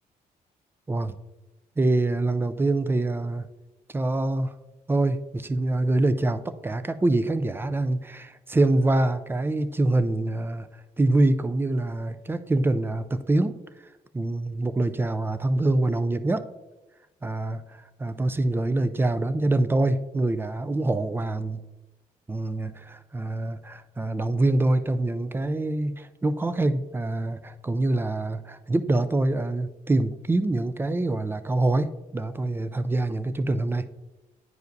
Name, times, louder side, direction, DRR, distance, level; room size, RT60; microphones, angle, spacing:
voice 1, 1.8-3.5 3.9-4.5 4.9-10.7 11.0-13.6 14.1-16.5 17.2-21.6 22.3-33.9, right 2 dB, 15° right, 12 dB, 0.3 m, -25 dB
9.4 x 4.8 x 2.6 m, 1.1 s
cardioid pair, 100°, 15 cm